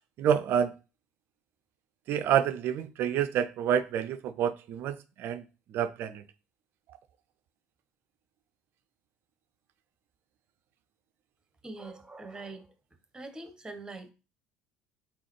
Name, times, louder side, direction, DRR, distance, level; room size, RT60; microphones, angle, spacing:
voice 1, 0.2-0.7 2.1-5.4 5.7-6.2, right 9 dB, 55° right, 0.4 m, -28 dB
voice 2, 11.6-12.7 13.1-14.1, right 2 dB, 15° right, 0.9 m, -43 dB
3.8 x 3.4 x 3.1 m
figure-of-eight pair, 60°, 5 cm